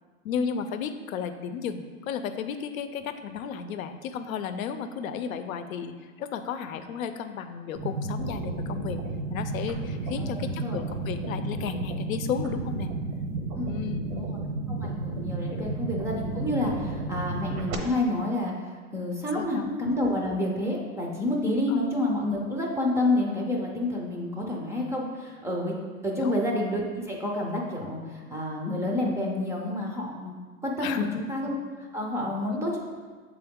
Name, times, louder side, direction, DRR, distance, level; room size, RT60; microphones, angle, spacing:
voice 1, 0.2-9.0 9.3-13.0 13.6-14.4 15.5-15.7 19.3-19.7 21.7-21.8 26.2-26.4 30.8-31.2 32.5-32.8, left 7 dB, 85° left, 9 dB, 0.6 m, -34 dB
sound 1, 7.8-17.8, right 3 dB, 80° right, 1.0 m, -32 dB
voice 2, 10.2-10.8 13.5-13.8 14.1-14.4 14.7-18.5 18.9-25.7 26.0-30.4 30.6-32.8, left 1 dB, 5° right, -1 dB, 0.4 m, -29 dB
6.8 x 3.8 x 3.6 m, 1.5 s
hypercardioid pair, 135°, 40 cm